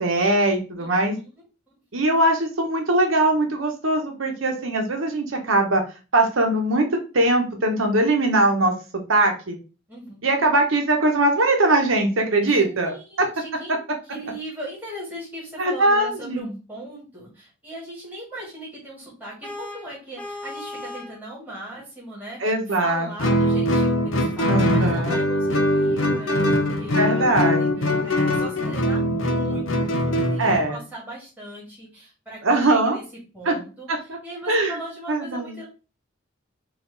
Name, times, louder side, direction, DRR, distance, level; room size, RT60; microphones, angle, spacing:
voice 1, 0.0-1.2 1.9-5.8 6.1-8.7 9.1-9.6 10.2-13.3 15.6-16.5 22.4-23.1 24.5-25.2 26.9-27.9 30.4-30.8 32.4-33.0 33.4-33.6 33.9-34.2 34.5-34.8 35.1-35.6, right 2 dB, 90° right, 3 dB, 1.0 m, -21 dB
voice 2, 0.8-1.3 9.9-10.2 12.4-13.8 14.0-32.4 32.7-33.0 33.3-35.7, right 1 dB, 10° right, -7 dB, 1.8 m, -39 dB
Vehicle horn car horn honking, 19.4-21.2, left 2 dB, 10° left, 0.5 m, -36 dB
Guitar, 23.2-30.7, left 1 dB, 75° left, 0.8 m, -22 dB
4.2 x 2.6 x 3.9 m, 0.34 s
head